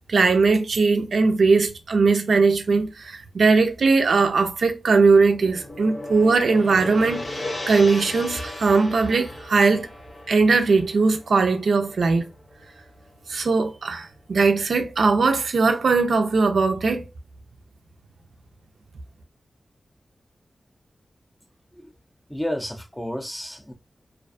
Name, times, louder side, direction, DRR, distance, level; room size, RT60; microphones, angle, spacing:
voice 1, 0.0-7.3 7.7-9.9 10.3-12.3 13.3-17.1, right 4 dB, 85° right, 0.4 m, -19 dB
Gong, 4.9-13.2, left 1 dB, 45° left, 0.7 m, -36 dB
voice 2, 22.3-23.7, equal, 5° left, 0.4 m, -31 dB
2.3 x 2.2 x 2.4 m
wide cardioid pair, 115°, 0 cm